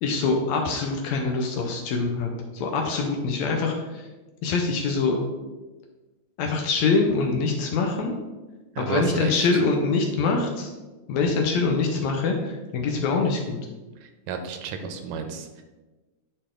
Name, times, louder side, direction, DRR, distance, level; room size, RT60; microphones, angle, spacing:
voice 1, 0.0-4.1 4.4-5.2 6.4-8.1 8.8-10.7 11.1-13.6, left 4 dB, 75° left, 1 dB, 2.0 m, -24 dB
voice 2, 8.8-9.5 14.0-15.6, right 5 dB, 80° right, 7 dB, 2.1 m, -32 dB
10.0 x 4.4 x 3.7 m, 1.2 s
omnidirectional pair, 3.4 m